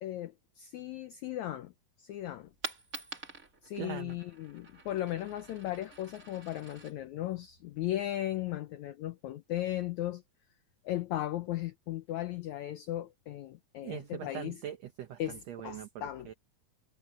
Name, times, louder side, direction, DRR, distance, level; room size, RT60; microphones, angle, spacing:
voice 1, 0.0-1.7 2.0-2.5 3.6-10.2 10.9-14.6 15.2-16.3, left 13 dB, 80° left, 1.7 m, -36 dB
Coin (dropping), 2.3-8.3, right 4 dB, 25° right, 2.7 m, -48 dB
voice 2, 3.8-4.2 13.8-16.3, right 11 dB, 80° right, 1.5 m, -42 dB
omnidirectional pair, 4.2 m